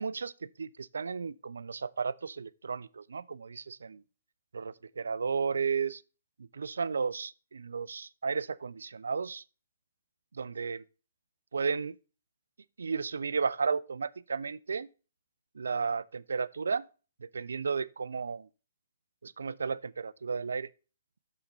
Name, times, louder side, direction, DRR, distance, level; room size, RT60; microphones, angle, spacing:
voice 1, 0.0-4.0 4.5-6.0 6.5-9.4 10.3-10.8 11.5-12.0 12.8-14.9 15.6-16.9 17.2-18.5 19.2-20.7, right 5 dB, 70° right, 0.4 m, -33 dB
6.7 x 5.8 x 4.3 m
figure-of-eight pair, 125°, 0 cm